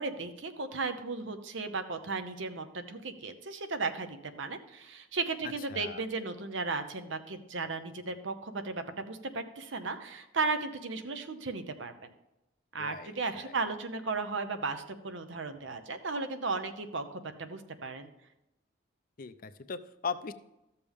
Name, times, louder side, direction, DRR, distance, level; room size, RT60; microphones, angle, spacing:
voice 1, 0.0-12.1 12.7-18.1, right 3 dB, 85° right, 9 dB, 0.9 m, -35 dB
voice 2, 5.7-6.0 12.8-13.6 19.2-20.3, left 5 dB, 45° left, 12 dB, 0.5 m, -39 dB
13.5 x 6.9 x 3.5 m, 0.94 s
head